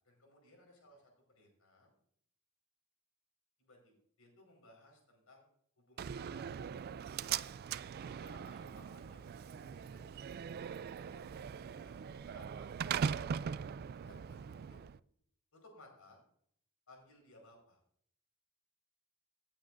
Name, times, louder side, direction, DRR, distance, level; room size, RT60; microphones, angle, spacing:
voice 1, 0.0-1.9 3.6-5.5 5.8-7.5 8.1-10.2 10.9-12.7 13.1-14.8 15.5-16.2 16.9-17.8, left 2 dB, 80° left, 1 dB, 4.7 m, -61 dB
Slam, 6.0-15.0, right 7 dB, 45° right, 0.3 m, -40 dB
18.0 x 8.8 x 2.6 m, 0.65 s
head